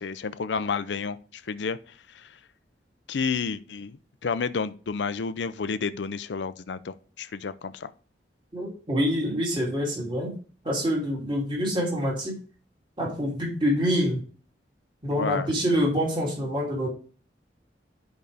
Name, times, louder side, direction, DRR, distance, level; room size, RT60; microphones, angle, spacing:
voice 1, 0.0-1.8 2.1-2.4 3.1-7.9 15.1-15.5, left 5 dB, 75° left, 0.5 m, -31 dB
voice 2, 8.5-10.3 10.6-12.3 13.0-14.2 15.0-16.9, equal, 30° right, 3.0 m, -26 dB
11.0 x 5.3 x 3.5 m
head